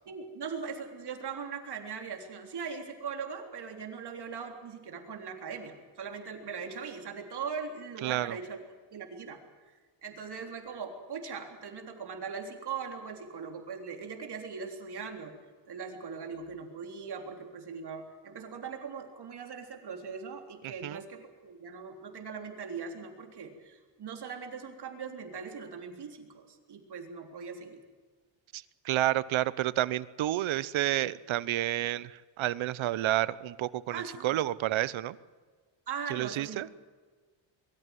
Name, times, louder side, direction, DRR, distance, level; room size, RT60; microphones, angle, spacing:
voice 1, 0.1-8.6 8.9-9.4 10.0-15.3 15.7-27.8 33.9-34.4 35.9-36.6, right 6 dB, 50° right, 3 dB, 3.7 m, -40 dB
voice 2, 8.0-8.4 20.6-21.0 28.5-35.2 36.1-36.7, right 14 dB, 70° right, 18 dB, 0.9 m, -30 dB
23.0 x 14.0 x 9.2 m, 1.5 s
cardioid pair, 110°, 49 cm